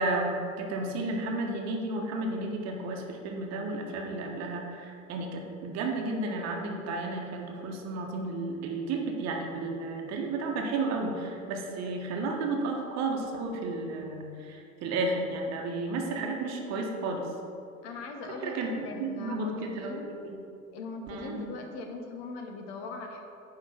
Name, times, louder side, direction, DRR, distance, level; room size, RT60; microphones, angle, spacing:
voice 1, 0.0-17.3 18.4-20.4 21.1-21.5, right 2 dB, 40° right, 1 dB, 1.3 m, -32 dB
voice 2, 17.8-20.1 20.7-23.2, left 3 dB, 50° left, 4 dB, 1.1 m, -40 dB
9.9 x 3.9 x 5.9 m, 2.7 s
figure-of-eight pair, 75°, 41 cm